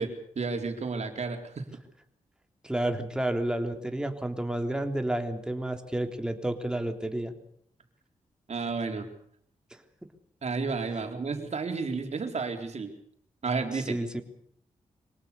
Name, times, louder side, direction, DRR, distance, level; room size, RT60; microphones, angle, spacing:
voice 1, 0.0-1.6 8.5-9.1 10.4-12.9 13.4-14.0, right 4 dB, 60° right, 5 dB, 4.2 m, -32 dB
voice 2, 2.6-7.3 13.9-14.2, right 1 dB, 5° right, 6 dB, 3.4 m, -30 dB
25.5 x 18.5 x 7.0 m, 0.68 s
cardioid pair, 70°, 13 cm